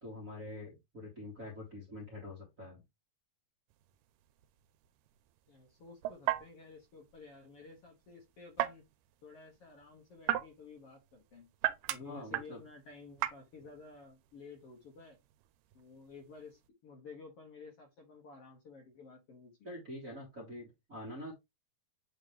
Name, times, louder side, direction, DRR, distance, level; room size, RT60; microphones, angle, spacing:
voice 1, 0.0-2.8 12.0-12.6 19.6-21.3, left 1 dB, 30° right, 1.6 m, -45 dB
sound 1, 3.7-16.7, right 14 dB, 90° right, 2.2 m, -40 dB
voice 2, 5.5-8.8 9.2-11.5 11.9-15.2 15.7-19.7, left 4 dB, 55° left, 2.0 m, -53 dB
8.5 x 3.5 x 3.3 m
omnidirectional pair, 3.8 m